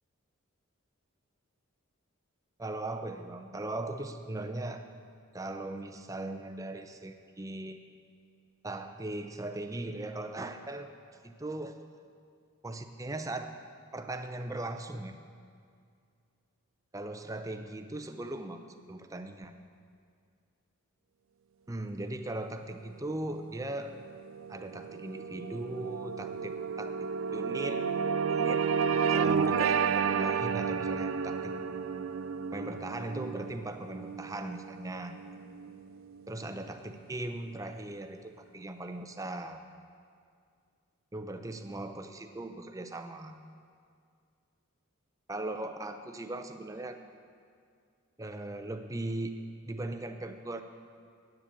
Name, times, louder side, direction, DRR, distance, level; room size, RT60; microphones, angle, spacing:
voice 1, 2.6-4.9 5.3-7.8 8.6-10.9 11.2-11.8 12.6-13.5 13.9-15.2 16.9-19.6 21.7-23.9 24.5-27.9 28.3-28.7 28.9-31.6 32.5-35.2 36.3-39.6 41.1-43.4 45.3-47.0 48.2-49.3 49.7-50.6, right 2 dB, 15° right, 7 dB, 0.6 m, -39 dB
sound 1, 23.5-36.0, right 6 dB, 70° right, 0.4 m, -32 dB
10.0 x 9.1 x 8.4 m, 2.2 s
head